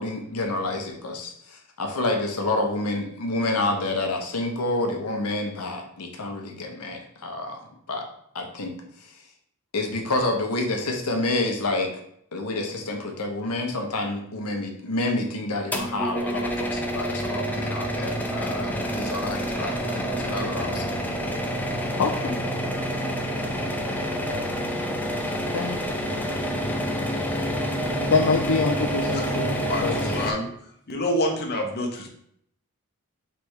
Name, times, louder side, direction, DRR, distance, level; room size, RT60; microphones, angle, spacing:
voice 1, 0.0-7.6 7.9-8.0 8.3-8.7 9.0-9.1 9.7-11.9 12.3-20.9, left 2 dB, 85° left, 3 dB, 0.8 m, -28 dB
Stove Overhead Fan (Low), 15.7-30.3, equal, 10° left, 0.4 m, -28 dB
voice 2, 22.0-22.4 25.5-25.8 28.1-29.5 29.8-30.0, left 4 dB, 70° left, 3 dB, 0.4 m, -24 dB
voice 3, 29.7-30.5 30.9-32.1, left 1 dB, 45° left, 1 dB, 0.8 m, -27 dB
3.3 x 3.1 x 4.6 m, 0.71 s
head